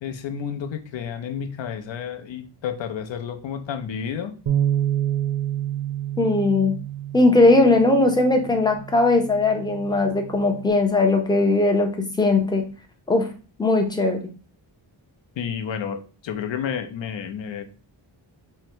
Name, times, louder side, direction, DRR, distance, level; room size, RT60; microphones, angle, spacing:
voice 1, 0.0-4.4 15.4-17.6, left 7 dB, 70° left, 0.6 m, -31 dB
Bass guitar, 4.5-10.7, right 11 dB, 75° right, 0.6 m, -28 dB
voice 2, 6.2-6.7 7.1-11.9 12.2-12.6 13.1-13.3 13.6-14.2, left 2 dB, 10° left, 0.5 m, -19 dB
3.7 x 2.1 x 4.4 m
wide cardioid pair, 175°, 47 cm